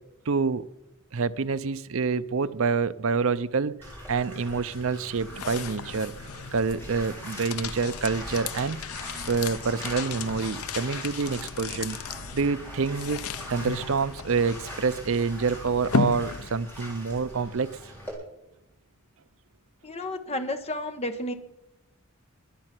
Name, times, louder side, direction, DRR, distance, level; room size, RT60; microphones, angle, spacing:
voice 1, 0.3-0.7 1.1-3.7 4.1-6.1 6.5-8.8 9.3-12.0 12.3-13.2 13.5-17.8, right 5 dB, 65° right, 13 dB, 0.6 m, -27 dB
Bathtub (filling or washing), 3.8-18.1, equal, 10° left, 3.5 m, -42 dB
sound 1, 4.7-16.9, left 5 dB, 75° left, 0.6 m, -35 dB
voice 2, 19.8-21.3, left 1 dB, 30° left, 7 dB, 1.2 m, -31 dB
21.5 x 7.7 x 6.0 m, 0.90 s
head